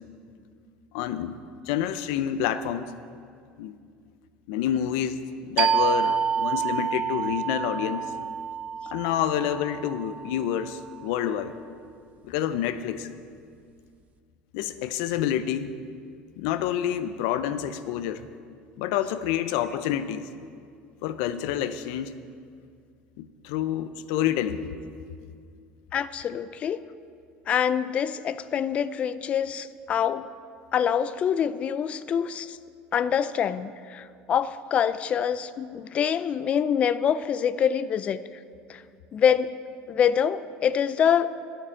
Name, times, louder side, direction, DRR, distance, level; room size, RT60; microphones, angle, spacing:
voice 1, 0.9-1.4 1.7-2.9 3.6-3.8 4.5-8.1 8.9-11.6 12.2-13.1 14.5-15.7 16.4-18.3 18.8-20.3 21.0-22.1 23.2-24.7, left 10 dB, 80° left, 12 dB, 0.6 m, -28 dB
sound 1, 5.6-10.9, right 7 dB, 40° right, 0.4 m, -28 dB
voice 2, 25.9-26.8 27.5-30.3 30.7-32.6 32.9-38.2 38.7-38.8 39.1-39.5 39.9-41.3, left 8 dB, 35° left, 15 dB, 0.4 m, -25 dB
10.0 x 6.7 x 8.6 m, 2.3 s
cardioid pair, 140°, 4 cm